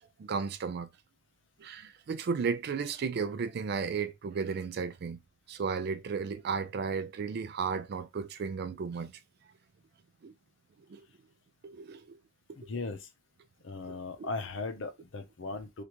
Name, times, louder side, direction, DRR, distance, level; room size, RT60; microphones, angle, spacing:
voice 1, 0.2-0.9 1.6-5.2 5.5-9.1 10.2-10.3 10.9-11.0 11.6-12.2 14.2-14.3, right 5 dB, 60° right, 0.4 m, -34 dB
voice 2, 12.6-13.1 13.6-15.8, left 3 dB, 85° left, 0.7 m, -38 dB
3.3 x 2.5 x 2.9 m
head